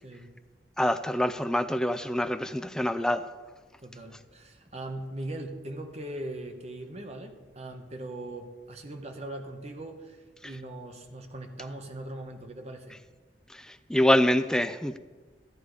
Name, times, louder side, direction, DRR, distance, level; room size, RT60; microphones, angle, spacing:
voice 1, 0.0-0.3 3.8-13.0, right 1 dB, 40° right, 5 dB, 1.1 m, -40 dB
voice 2, 0.8-3.2 13.9-15.0, left 1 dB, 5° left, 10 dB, 0.4 m, -25 dB
13.5 x 8.5 x 4.8 m, 1.4 s
head